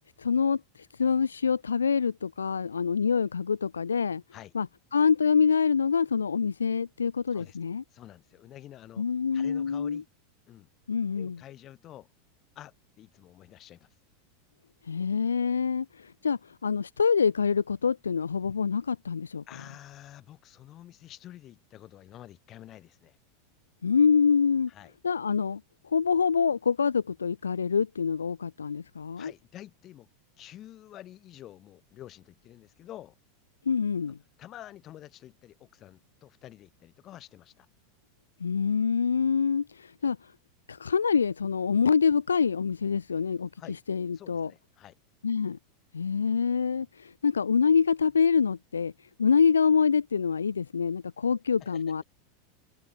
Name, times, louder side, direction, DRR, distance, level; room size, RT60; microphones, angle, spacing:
voice 1, 0.2-4.2 4.5-4.7 4.9-7.8 9.0-10.0 10.9-11.4 14.8-19.4 23.8-24.7 25.0-29.3 33.7-34.2 38.4-40.3 40.7-44.5 45.2-45.6 45.9-48.9 49.2-52.0, left 6 dB, 75° left, 0.5 m, -26 dB
voice 2, 7.9-9.0 9.3-10.1 10.5-10.7 11.1-12.1 12.6-13.9 19.5-23.2 24.7-24.9 29.2-30.1 30.4-33.2 34.0-34.1 34.4-37.7 43.6-43.8 44.1-45.0 51.6-51.8, left 13 dB, 35° left, 7.5 m, -49 dB
figure-of-eight pair, 85°, 0 cm